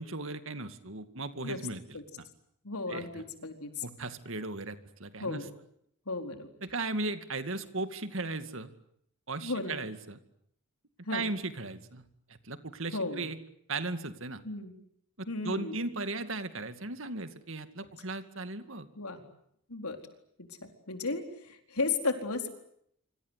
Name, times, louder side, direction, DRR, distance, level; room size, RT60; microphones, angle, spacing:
voice 1, 0.0-2.2 2.9-3.2 3.8-5.4 6.6-8.7 9.3-10.2 11.1-13.4 13.7-14.4 15.2-18.9, right 2 dB, 65° right, 10 dB, 2.2 m, -37 dB
voice 2, 2.6-3.8 5.2-5.5 6.1-6.5 9.4-9.8 11.0-11.3 12.9-13.3 14.4-14.7 15.3-15.8 19.0-19.2 19.7-20.0 20.5-20.6 20.9-22.5, left 3 dB, 90° left, 5 dB, 4.3 m, -34 dB
26.5 x 25.5 x 8.3 m, 0.70 s
head